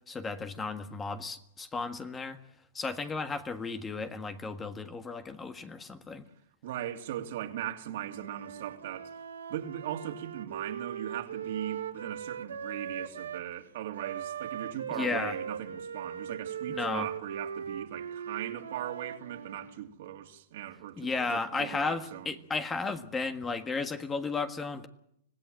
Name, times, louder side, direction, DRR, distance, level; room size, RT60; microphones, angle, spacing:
voice 1, 0.1-2.4 2.7-6.2 14.9-15.4 16.7-17.1 21.0-24.9, left 4 dB, 15° left, 1.6 m, -34 dB
voice 2, 6.6-9.1 9.5-22.3, right 11 dB, 65° right, 2.7 m, -39 dB
Wind instrument woodwind instrument, 8.0-13.5 13.9-19.8, right 8 dB, 85° right, 1.4 m, -40 dB
25.5 x 17.0 x 7.7 m
hypercardioid pair, 125°, 0 cm